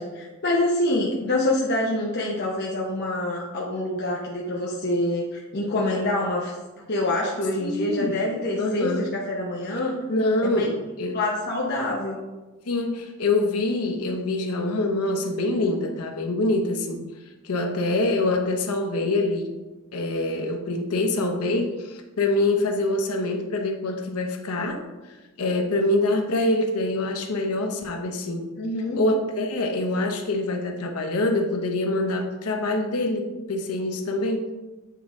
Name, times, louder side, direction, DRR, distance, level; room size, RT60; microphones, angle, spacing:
voice 1, 0.0-6.5 6.9-9.9 10.4-10.7 11.1-12.2 28.6-29.0, left 1 dB, 50° left, -3 dB, 0.8 m, -26 dB
voice 2, 7.6-8.2 8.6-9.1 10.1-11.2 12.7-17.0 17.4-19.5 19.9-24.8 25.0-28.5 28.9-34.5, left 2 dB, 85° left, 3 dB, 0.8 m, -25 dB
8.4 x 3.6 x 3.7 m, 1.1 s
head